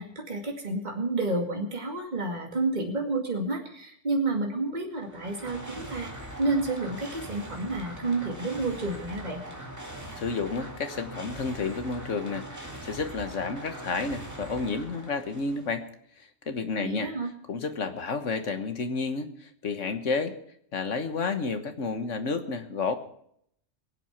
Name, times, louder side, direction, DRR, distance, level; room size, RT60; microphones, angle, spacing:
voice 1, 0.0-6.1 6.4-9.4 16.8-17.3, right 2 dB, 35° right, 1 dB, 2.4 m, -30 dB
sound 1, 4.9-15.8, right 1 dB, 15° right, 2.2 m, -42 dB
voice 2, 10.2-15.8 16.2-17.1 17.5-20.4 20.7-23.0, left 4 dB, 80° left, 8 dB, 1.7 m, -31 dB
22.0 x 8.1 x 5.9 m, 0.69 s
omnidirectional pair, 1.3 m